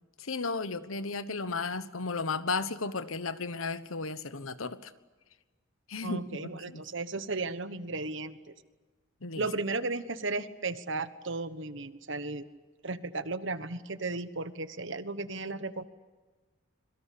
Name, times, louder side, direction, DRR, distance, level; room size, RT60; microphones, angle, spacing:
voice 1, 0.2-4.9 5.9-6.8 9.2-9.5, left 4 dB, 80° left, 13 dB, 1.3 m, -34 dB
voice 2, 6.0-8.5 9.3-12.5 12.8-15.8, right 3 dB, 60° right, 12 dB, 1.3 m, -35 dB
25.5 x 23.0 x 8.5 m, 1.3 s
head